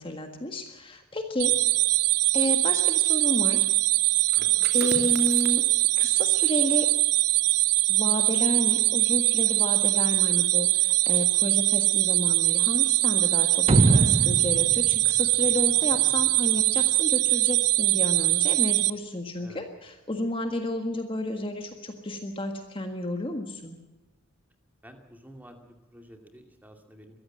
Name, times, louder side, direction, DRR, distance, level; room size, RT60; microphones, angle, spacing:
voice 1, 0.0-1.7 2.3-3.6 4.7-5.6 6.0-6.9 7.9-23.8, left 1 dB, 25° left, 5 dB, 1.6 m, -31 dB
sound 1, 1.4-18.9, right 19 dB, 85° right, 0.6 m, -22 dB
sound 2, 4.2-9.7 10.0-10.3, right 4 dB, 45° right, 2.6 m, -43 dB
sound 3, 13.7-16.2, right 2 dB, 25° right, 0.6 m, -23 dB
voice 2, 15.8-16.4 19.4-19.7 24.8-27.2, equal, 10° right, 4 dB, 2.4 m, -50 dB
23.0 x 15.0 x 7.7 m, 1.1 s
head